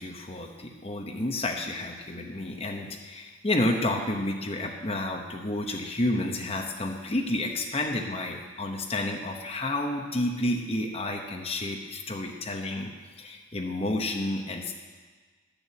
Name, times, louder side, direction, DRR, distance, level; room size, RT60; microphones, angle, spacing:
voice 1, 0.0-12.9 13.2-14.7, left 1 dB, 30° left, 1 dB, 1.0 m, -30 dB
10.5 x 7.0 x 8.2 m, 1.4 s
head